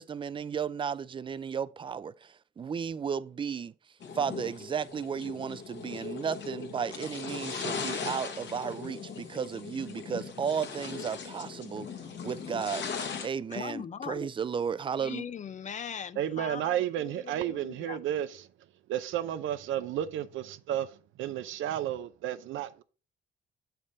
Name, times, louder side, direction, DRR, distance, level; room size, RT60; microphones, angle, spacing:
voice 1, 0.0-3.7 4.1-11.9 12.2-12.9 13.2-15.2, right 7 dB, 25° right, 0.3 m, -34 dB
sound 1, 4.0-13.3, left 5 dB, 65° left, 1.2 m, -39 dB
voice 2, 13.5-14.3 15.0-18.0, left 8 dB, 40° left, 0.4 m, -40 dB
voice 3, 16.2-18.5 18.9-22.8, right 11 dB, 80° right, 0.5 m, -32 dB
7.2 x 3.3 x 5.2 m
cardioid pair, 90°, 20 cm